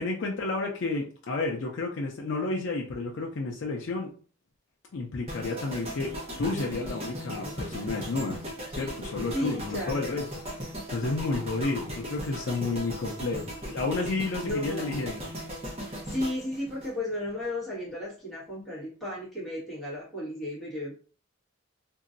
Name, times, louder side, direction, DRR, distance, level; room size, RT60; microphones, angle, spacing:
voice 1, 0.0-4.1 4.9-8.4 8.7-10.2 10.5-10.6 10.9-15.2, left 3 dB, 60° left, 0 dB, 0.4 m, -31 dB
sound 1, 5.3-17.5 17.7-18.0, equal, 30° right, 0.9 m, -38 dB
voice 2, 9.3-10.2 14.4-15.1 15.8-20.9, left 1 dB, ahead, -10 dB, 1.5 m, -34 dB
2.9 x 2.6 x 2.5 m, 0.41 s
head